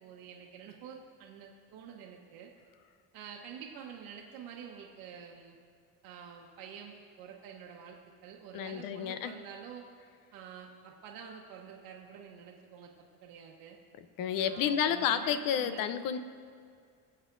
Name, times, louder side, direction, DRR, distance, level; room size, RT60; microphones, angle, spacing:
voice 1, 0.0-2.5 3.1-5.6 6.0-9.8 10.3-13.8 14.4-15.9, right 7 dB, 90° right, 0 dB, 1.2 m, -48 dB
voice 2, 8.5-9.3 14.2-16.2, left 9 dB, 70° left, 11 dB, 0.7 m, -30 dB
24.0 x 8.0 x 2.6 m, 2.3 s
cardioid pair, 125°, 35 cm